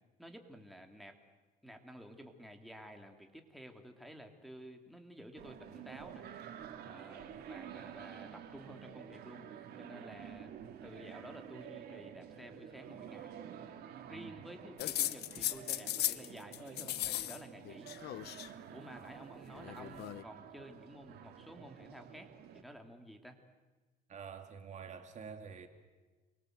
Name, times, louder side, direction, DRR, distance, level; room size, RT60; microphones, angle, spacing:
voice 1, 0.2-1.2 1.6-6.3 6.8-9.4 9.8-10.5 10.8-13.3 14.0-17.9 18.7-23.4, equal, ahead, 3.2 m, -52 dB
sound 1, 5.4-22.6, right 9 dB, 70° right, 2.8 m, -50 dB
sound 2, 14.8-16.3 16.5-17.4 17.6-18.5 19.5-20.2, left 14 dB, 75° left, 1.1 m, -37 dB
voice 2, 24.1-25.7, right 6 dB, 45° right, 2.4 m, -48 dB
29.0 x 24.5 x 8.1 m
cardioid pair, 110°, 17 cm